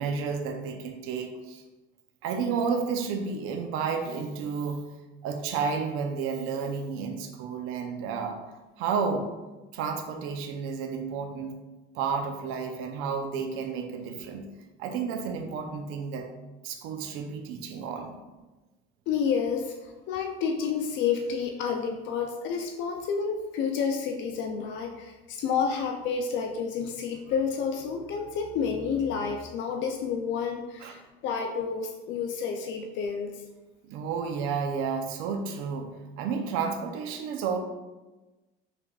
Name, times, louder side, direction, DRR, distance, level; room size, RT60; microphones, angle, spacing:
voice 1, 0.0-1.6 2.2-4.8 5.2-8.4 8.8-9.3 9.7-11.6 11.9-14.5 14.8-16.3 16.6-18.2 30.8-31.0 33.8-37.6, right 5 dB, 75° right, 4 dB, 0.6 m, -31 dB
voice 2, 19.1-33.4, left 6 dB, 60° left, 4 dB, 0.4 m, -30 dB
5.6 x 3.4 x 2.3 m, 1.1 s
cardioid pair, 140°, 21 cm